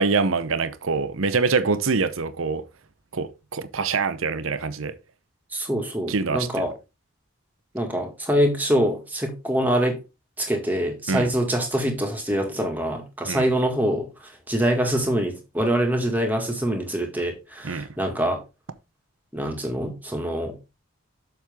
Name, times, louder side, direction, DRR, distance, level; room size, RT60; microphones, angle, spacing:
voice 1, 0.0-2.6 3.1-5.0 6.1-6.6 11.1-11.3 13.3-13.4 17.6-17.9, right 4 dB, 80° right, 0.7 m, -24 dB
voice 2, 5.5-6.7 7.7-10.0 10.4-18.4 19.3-20.5, equal, 10° right, 1.9 m, -24 dB
7.4 x 6.4 x 3.6 m
head